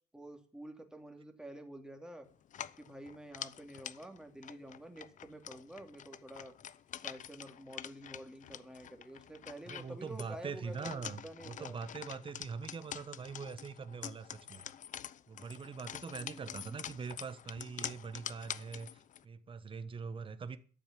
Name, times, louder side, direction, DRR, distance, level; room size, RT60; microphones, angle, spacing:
voice 1, 0.1-2.3 2.8-6.5 7.0-11.8 16.2-16.8, right 1 dB, 5° right, 2.7 m, -49 dB
sound 1, 2.5-19.2, left 10 dB, 50° left, 0.8 m, -47 dB
voice 2, 9.7-14.7 15.3-20.6, right 5 dB, 30° right, 1.3 m, -43 dB
13.0 x 7.4 x 7.5 m
cardioid pair, 110°, 17 cm